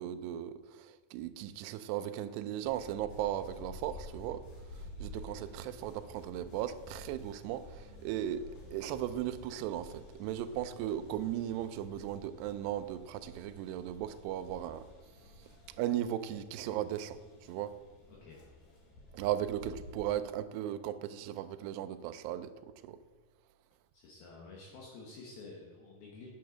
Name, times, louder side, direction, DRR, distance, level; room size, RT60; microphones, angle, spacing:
voice 1, 0.0-4.4 4.7-14.9 15.8-17.8 19.1-23.0, right 11 dB, 80° right, 2.6 m, -37 dB
sound 1, 2.6-20.0, left 1 dB, 50° left, 3.4 m, -51 dB
voice 2, 18.1-18.4 23.9-26.3, left 3 dB, 65° left, 3.0 m, -50 dB
9.0 x 8.5 x 6.3 m
omnidirectional pair, 5.1 m